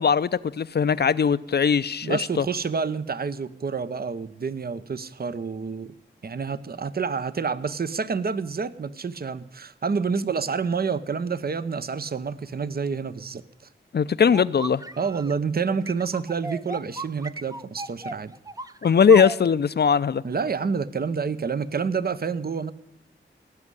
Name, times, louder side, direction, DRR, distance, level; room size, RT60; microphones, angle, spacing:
voice 1, 0.0-2.4 13.9-14.8 18.8-20.2, left 6 dB, 55° left, 0.6 m, -20 dB
voice 2, 2.0-5.9 6.2-13.4 15.0-18.3 20.2-22.7, right 5 dB, 50° right, 0.8 m, -28 dB
sound 1, 14.3-15.3 15.9-19.4, right 2 dB, 20° right, 0.6 m, -35 dB
18.0 x 6.3 x 9.8 m
cardioid pair, 45°, 20 cm